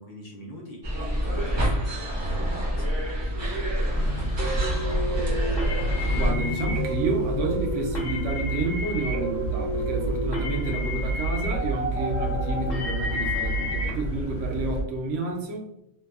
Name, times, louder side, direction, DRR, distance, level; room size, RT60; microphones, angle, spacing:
voice 1, 0.0-5.0, left 1 dB, 55° left, -2 dB, 0.6 m, -45 dB
sound 1, 0.8-6.3, equal, 35° right, 0.4 m, -27 dB
sound 2, 4.0-14.8, right 1 dB, 85° left, 1.0 m, -30 dB
sound 3, 4.4-13.9, equal, 40° left, 0.9 m, -32 dB
voice 2, 6.1-15.7, right 2 dB, 85° right, 1 dB, 1.0 m, -30 dB
2.7 x 2.3 x 2.3 m, 0.80 s
omnidirectional pair, 1.2 m